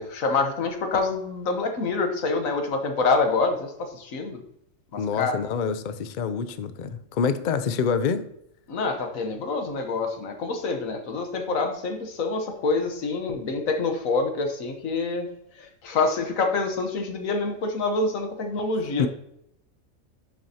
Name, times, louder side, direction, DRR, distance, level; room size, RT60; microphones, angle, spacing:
voice 1, 0.0-4.4 5.2-5.3 8.7-15.3 15.6-19.1, left 3 dB, 80° left, 1.5 m, -26 dB
voice 2, 5.0-8.3 19.0-19.1, left 6 dB, 55° left, 0.5 m, -26 dB
10.0 x 6.2 x 2.8 m
omnidirectional pair, 1.4 m